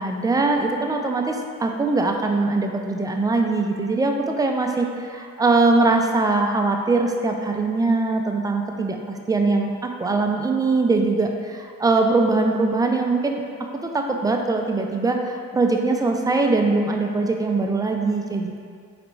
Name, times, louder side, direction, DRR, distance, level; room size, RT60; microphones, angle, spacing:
voice 1, 0.0-13.4 13.8-18.6, right 3 dB, 15° right, 3 dB, 0.3 m, -22 dB
4.0 x 3.4 x 3.1 m, 2.1 s
cardioid pair, 90°, 30 cm